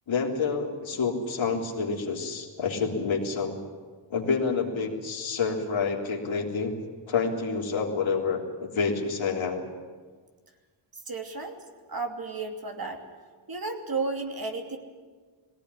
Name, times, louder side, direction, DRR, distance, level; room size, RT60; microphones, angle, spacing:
voice 1, 0.1-3.6 4.1-6.7 7.1-9.6, left 5 dB, 70° left, 0 dB, 3.5 m, -28 dB
voice 2, 11.1-11.6 11.9-13.0 13.5-14.8, right 3 dB, 45° right, 4 dB, 2.9 m, -33 dB
19.0 x 17.5 x 9.9 m, 1.5 s
cardioid pair, 65°, 49 cm